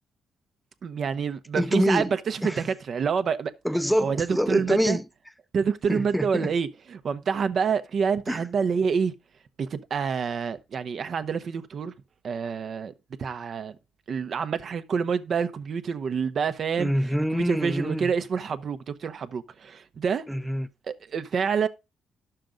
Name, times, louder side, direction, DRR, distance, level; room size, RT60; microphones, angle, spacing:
voice 1, 0.8-3.5 4.0-5.0 5.5-9.1 9.6-11.9 12.2-12.9 13.2-13.7 14.1-16.9 17.3-20.2 20.9-21.7, right 6 dB, 55° right, 0.8 m, -27 dB
voice 2, 1.6-2.1 2.4-2.6 3.6-5.1 5.9-6.5 8.3-8.5 16.8-18.1 20.3-20.7, equal, ahead, 0.6 m, -25 dB
10.5 x 6.7 x 3.8 m
cardioid pair, 90°, 0 cm